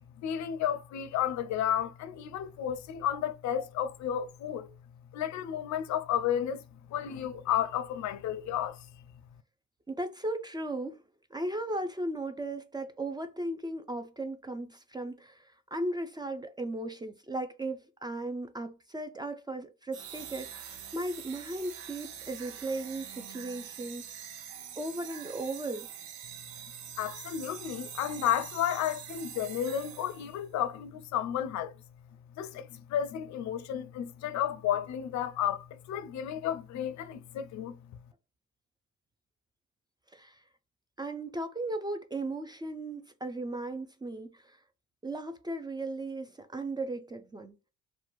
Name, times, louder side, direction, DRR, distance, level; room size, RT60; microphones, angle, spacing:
voice 1, 0.2-4.7 5.1-6.6 6.9-8.9 27.0-31.7 32.4-37.8, left 10 dB, 70° left, 0.4 m, -32 dB
voice 2, 9.9-11.0 11.3-24.4 24.8-25.9 40.1-40.4 41.0-44.6 45.0-47.6, right 2 dB, 15° right, 0.3 m, -36 dB
sound 1, 19.9-30.5, right 9 dB, 75° right, 0.5 m, -45 dB
2.4 x 2.2 x 2.9 m
cardioid pair, 90°, 30 cm